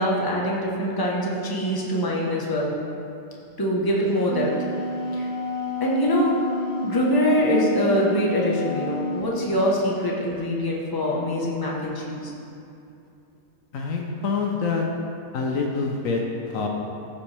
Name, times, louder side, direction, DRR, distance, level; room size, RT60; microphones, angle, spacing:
voice 1, 0.0-2.7 3.6-4.6 5.1-5.3 5.8-6.4 6.8-12.3, equal, 15° left, -3 dB, 1.1 m, -23 dB
Wind instrument woodwind instrument, 4.0-9.2, left 2 dB, 35° right, 1.6 m, -30 dB
voice 2, 13.7-14.9 15.3-16.7, left 4 dB, 70° left, 1 dB, 1.2 m, -26 dB
14.0 x 5.7 x 3.4 m, 2.7 s
omnidirectional pair, 1.5 m